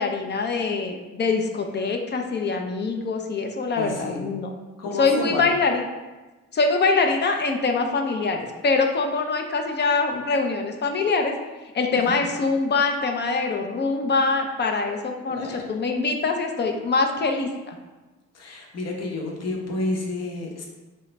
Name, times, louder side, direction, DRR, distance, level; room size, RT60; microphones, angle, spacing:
voice 1, 0.0-4.5 5.0-5.8 6.5-11.3 11.7-17.8, left 4 dB, 35° left, 4 dB, 0.5 m, -24 dB
voice 2, 3.8-4.3 4.8-5.4 15.3-15.6 18.3-20.7, left 2 dB, 55° left, -1 dB, 0.9 m, -30 dB
3.7 x 2.2 x 4.0 m, 1.2 s
cardioid pair, 90°, 30 cm